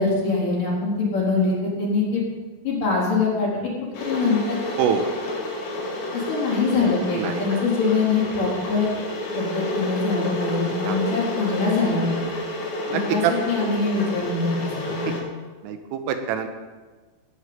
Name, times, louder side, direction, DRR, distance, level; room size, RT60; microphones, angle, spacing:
voice 1, 0.0-2.2 2.6-3.6 4.0-4.6 6.1-8.9 9.4-12.3 12.9-15.0, left 4 dB, 40° left, -5 dB, 5.4 m, -23 dB
Water / Boiling, 3.9-15.2, left 1 dB, 70° left, 5.9 m, -30 dB
voice 2, 12.9-13.3 15.7-16.5, right 9 dB, 80° right, 7 dB, 3.5 m, -24 dB
18.5 x 6.6 x 8.9 m, 1.4 s
omnidirectional pair, 6.0 m